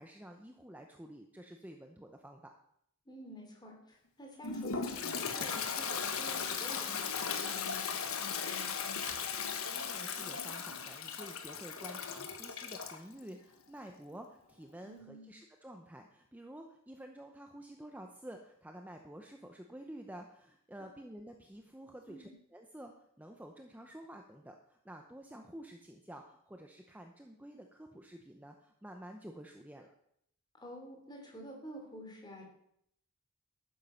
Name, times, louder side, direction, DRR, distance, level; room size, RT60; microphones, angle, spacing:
voice 1, 0.0-2.5 9.7-29.9, right 1 dB, 10° right, 3 dB, 0.7 m, -50 dB
voice 2, 3.0-9.2 14.8-15.3 22.1-22.3 30.5-32.4, equal, 20° left, 1 dB, 3.1 m, -50 dB
Toilet flush, 4.4-13.0, left 6 dB, 75° left, 1.3 m, -37 dB
12.0 x 9.4 x 5.7 m, 0.73 s
head